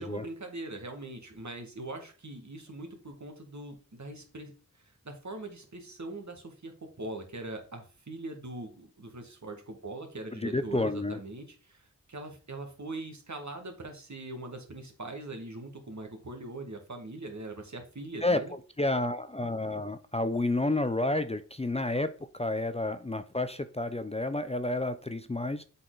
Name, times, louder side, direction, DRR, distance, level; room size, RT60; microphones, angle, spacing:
voice 1, 0.0-18.5, right 2 dB, 55° right, 4 dB, 1.8 m, -42 dB
voice 2, 10.4-11.2 18.2-18.4 18.8-25.6, left 2 dB, 20° left, 11 dB, 0.5 m, -30 dB
7.5 x 4.2 x 3.9 m, 0.38 s
wide cardioid pair, 45°, 33 cm